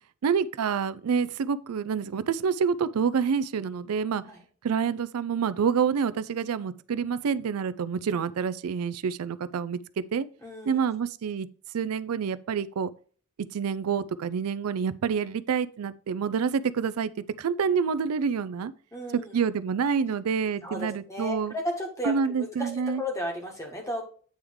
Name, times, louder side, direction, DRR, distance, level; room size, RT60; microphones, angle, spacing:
voice 1, 0.2-4.2 4.6-9.8 10.1-10.2 10.7-11.5 11.7-12.9 13.5-17.1 17.4-18.7 19.1-21.5 22.0-23.0, right 6 dB, 85° right, 0.4 m, -27 dB
voice 2, 10.4-10.8 18.9-19.3 20.6-24.0, equal, 15° left, 1.7 m, -34 dB
8.7 x 3.5 x 4.7 m
head